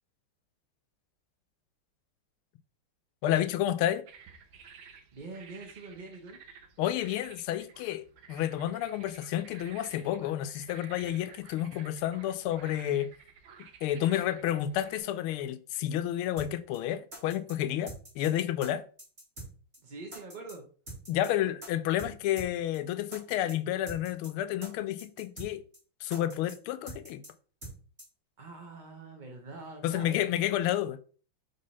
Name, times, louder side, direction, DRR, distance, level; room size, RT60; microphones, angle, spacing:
voice 1, 3.2-4.0 6.8-13.1 13.8-18.8 21.1-25.6 26.0-27.2 29.8-31.0, left 12 dB, 85° left, 1.5 m, -30 dB
sound 1, 4.1-15.0, right 6 dB, 75° right, 1.6 m, -53 dB
voice 2, 5.1-6.4 19.8-20.7 21.1-21.5 28.4-30.2, right 3 dB, 45° right, 0.6 m, -44 dB
sound 2, 16.4-16.5 16.7-16.8 17.1-17.5 17.9-18.3 18.6-18.7 19.0-19.5 19.7-19.8 20.1-20.5 20.9-21.3 21.6-21.7 22.0-22.1 22.4-22.5 22.7-22.8 23.1-23.5 23.9-24.3 24.6-24.7 25.0-25.5 25.7-25.8 26.1-26.5 26.9-27.3 27.6-27.7 28.0-28.1, right 1 dB, 20° right, 2.4 m, -44 dB
5.3 x 3.7 x 5.4 m
omnidirectional pair, 2.3 m